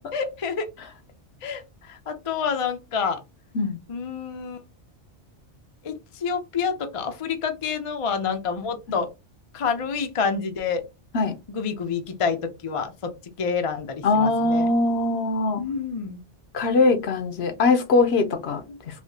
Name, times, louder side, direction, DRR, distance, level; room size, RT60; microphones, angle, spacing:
voice 1, 0.1-0.7 1.4-3.2 3.9-4.6 5.8-9.1 9.5-10.8 11.5-14.7 15.6-16.2 18.7-18.8, left 6 dB, 40° left, 0.5 m, -28 dB
voice 2, 14.0-15.6 16.5-18.6, left 3 dB, 65° left, 0.9 m, -21 dB
3.5 x 2.7 x 2.7 m
omnidirectional pair, 1.2 m